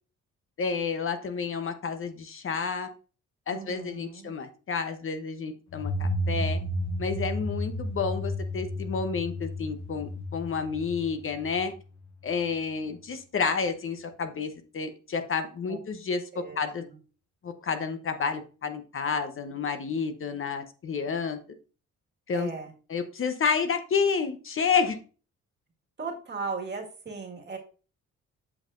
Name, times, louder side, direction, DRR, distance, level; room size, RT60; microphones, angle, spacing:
voice 1, 0.6-2.9 3.5-6.6 7.0-11.7 12.2-16.2 16.6-16.8 17.4-21.4 22.3-22.5 22.9-25.0, left 5 dB, 45° left, 8 dB, 0.9 m, -30 dB
voice 2, 3.5-4.3 15.7-15.8 16.3-16.6 22.3-22.7 26.0-27.6, right 4 dB, 35° right, 2 dB, 1.8 m, -37 dB
sound 1, 5.7-12.3, equal, 65° left, 1.7 m, -32 dB
8.0 x 5.7 x 2.5 m, 0.37 s
cardioid pair, 90°, 30 cm